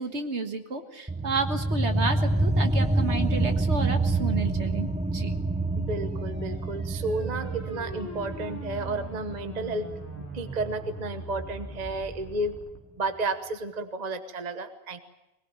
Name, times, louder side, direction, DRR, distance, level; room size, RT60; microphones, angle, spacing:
voice 1, 0.0-4.9 5.1-5.3, right 3 dB, 60° right, 7 dB, 1.9 m, -31 dB
sound 1, 1.1-12.2, right 2 dB, 10° right, 0.4 m, -28 dB
voice 2, 5.8-9.9 10.2-12.6 13.0-15.0, right 2 dB, 35° right, 9 dB, 1.2 m, -32 dB
sound 2, 5.9-12.8, equal, 10° left, 3.5 m, -43 dB
21.5 x 20.5 x 8.9 m, 0.95 s
omnidirectional pair, 1.3 m